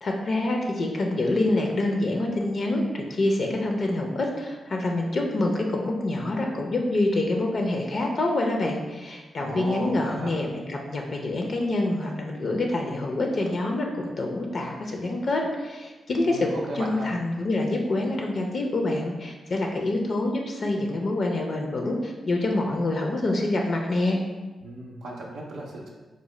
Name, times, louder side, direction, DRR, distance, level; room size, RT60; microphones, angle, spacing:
voice 1, 0.0-24.2, left 2 dB, 60° left, 1 dB, 0.4 m, -26 dB
voice 2, 9.4-10.4 16.2-17.1 24.6-25.9, right 1 dB, 85° right, -4 dB, 0.4 m, -35 dB
3.9 x 2.0 x 3.0 m, 1.2 s
cardioid pair, 55°, 0 cm